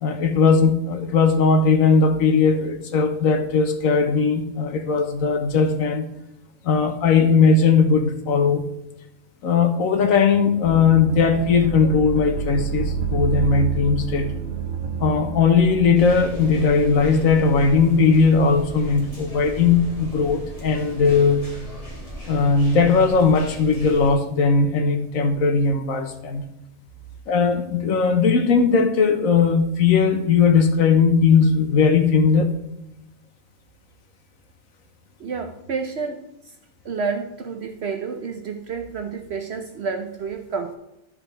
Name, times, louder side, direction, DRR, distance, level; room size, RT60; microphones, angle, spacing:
voice 1, 0.0-6.1 6.6-8.6 9.4-14.3 15.0-21.4 22.3-26.5 27.3-32.5, left 5 dB, 80° left, 7 dB, 1.3 m, -18 dB
sound 1, 10.6-19.9 20.2-20.3, right 5 dB, 45° right, 1.4 m, -30 dB
sound 2, 15.9-24.1, equal, 25° left, 2.0 m, -36 dB
voice 2, 35.2-36.2 36.8-40.7, right 5 dB, 60° right, 5 dB, 0.9 m, -29 dB
12.0 x 4.5 x 4.0 m, 0.87 s
omnidirectional pair, 1.4 m